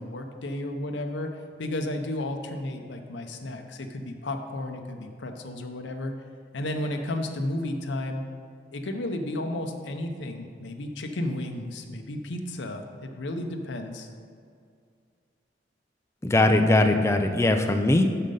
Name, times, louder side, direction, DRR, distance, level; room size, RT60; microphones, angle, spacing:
voice 1, 0.0-1.3 1.6-6.1 6.5-8.2 8.7-14.1, left 1 dB, 75° left, 4 dB, 0.7 m, -33 dB
voice 2, 16.2-18.0, left 2 dB, 15° left, 5 dB, 0.4 m, -20 dB
6.4 x 5.7 x 5.2 m, 2.2 s
head